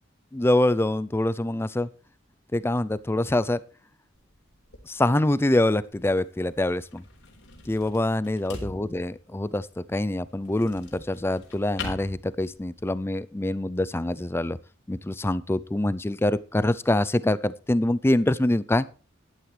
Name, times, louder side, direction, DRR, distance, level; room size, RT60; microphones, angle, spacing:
voice 1, 0.3-1.9 2.5-3.6 4.9-7.0 7.7-14.6 14.9-18.9, left 1 dB, 10° left, 17 dB, 0.4 m, -25 dB
sound 1, 4.1-12.9, left 3 dB, 60° left, 3.9 m, -44 dB
14.5 x 11.0 x 3.3 m, 0.38 s
head